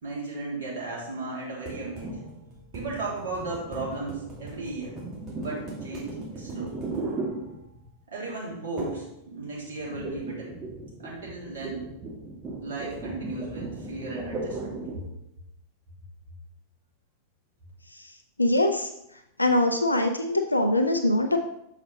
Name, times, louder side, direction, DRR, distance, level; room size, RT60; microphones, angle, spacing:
voice 1, 0.0-2.1 2.7-4.9 5.4-6.7 8.1-10.5 11.0-11.9 12.6-15.0, right 2 dB, 60° right, -4 dB, 2.9 m, -35 dB
sound 1, 1.7-8.0 8.8-9.1 9.4-15.1, right 3 dB, 25° right, 2.1 m, -37 dB
voice 2, 18.4-18.9 19.4-21.4, left 1 dB, 85° left, 5 dB, 0.5 m, -23 dB
7.0 x 5.0 x 4.0 m, 0.81 s
figure-of-eight pair, 90°, 0 cm